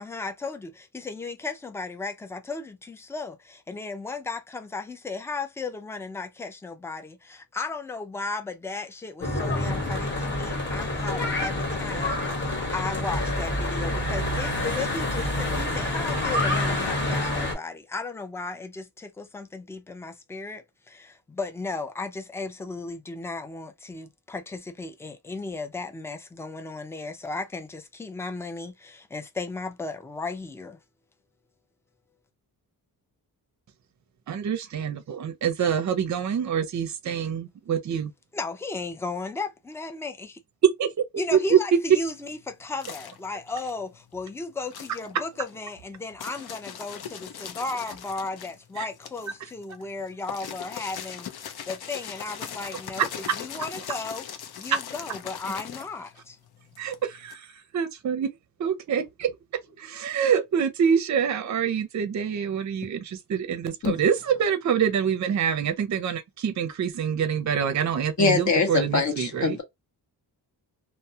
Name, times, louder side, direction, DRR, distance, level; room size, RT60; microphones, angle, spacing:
voice 1, 0.0-30.8 38.3-40.4 41.2-54.3 54.6-56.4, left 3 dB, 5° left, 0.4 m, -35 dB
Church bell / Traffic noise roadway noise, 9.2-17.5, left 1 dB, 30° left, 1.1 m, -27 dB
voice 2, 34.3-38.1 40.8-40.9 41.3-41.6 48.8-48.9 56.8-57.5 57.7-58.3 58.6-59.4 59.8-69.6, right 7 dB, 45° right, 0.5 m, -26 dB
sound 1, 41.9-44.3 44.6-57.3, left 8 dB, 70° left, 0.6 m, -40 dB
voice 3, 68.2-69.6, left 4 dB, 45° left, 0.9 m, -23 dB
2.2 x 2.1 x 2.6 m
wide cardioid pair, 125°, 40 cm